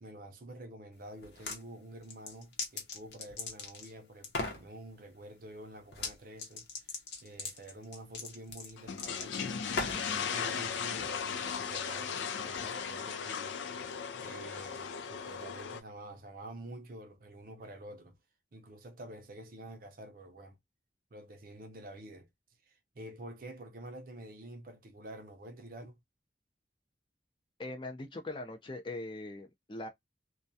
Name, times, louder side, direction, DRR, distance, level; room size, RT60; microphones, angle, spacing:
voice 1, 0.0-9.6 9.9-13.6 13.8-13.9 14.2-18.2 18.5-20.6 21.1-22.3 22.7-26.0, right 1 dB, 50° right, 0.5 m, -48 dB
sound 1, 1.2-1.6 2.1-3.9 4.2-4.6 5.9-6.1 6.4-10.1, left 3 dB, 65° left, 0.8 m, -38 dB
sound 2, 8.8-15.8, left 6 dB, 80° left, 0.4 m, -37 dB
voice 2, 27.6-29.9, left 2 dB, 25° left, 0.5 m, -41 dB
2.2 x 2.2 x 2.6 m
head